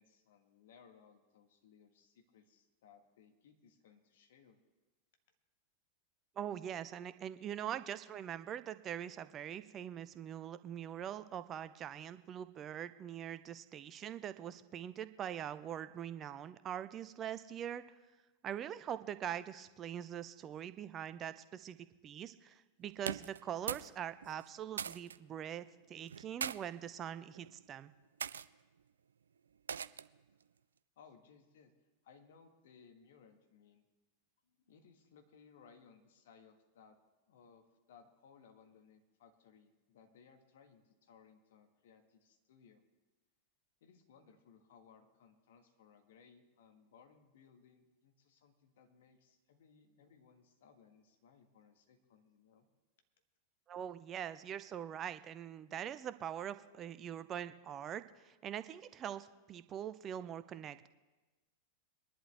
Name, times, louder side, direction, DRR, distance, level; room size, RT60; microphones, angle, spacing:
voice 1, 0.0-4.6 30.9-31.7 32.0-33.8 34.4-37.0 37.3-42.8 43.8-52.7, left 6 dB, 55° left, 5 dB, 1.7 m, -63 dB
voice 2, 6.4-17.8 18.4-21.8 22.0-27.9 53.7-60.9, right 9 dB, 30° right, 14 dB, 0.6 m, -43 dB
sound 1, 23.0-23.9 24.2-25.2 26.1-26.6 27.3-27.6 28.2-28.5 29.7-30.2, right 7 dB, 70° right, 0.3 m, -40 dB
23.0 x 11.0 x 3.4 m, 1.2 s
figure-of-eight pair, 90°, 0 cm